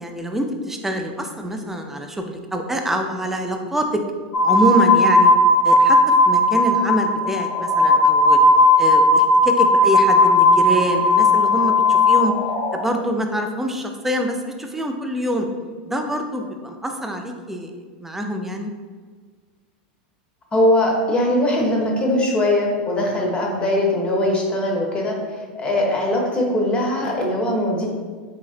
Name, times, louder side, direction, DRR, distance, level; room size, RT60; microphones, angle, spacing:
voice 1, 0.0-4.0 4.4-5.3 5.6-8.4 8.8-12.4 12.7-15.5 15.9-18.7, right 1 dB, 5° right, 4 dB, 0.3 m, -25 dB
sound 1, 4.3-12.8, left 2 dB, 70° left, 0.8 m, -16 dB
voice 2, 20.5-27.9, left 1 dB, 20° left, -1 dB, 0.7 m, -21 dB
3.8 x 3.1 x 2.4 m, 1.5 s
supercardioid pair, 130°, 5 cm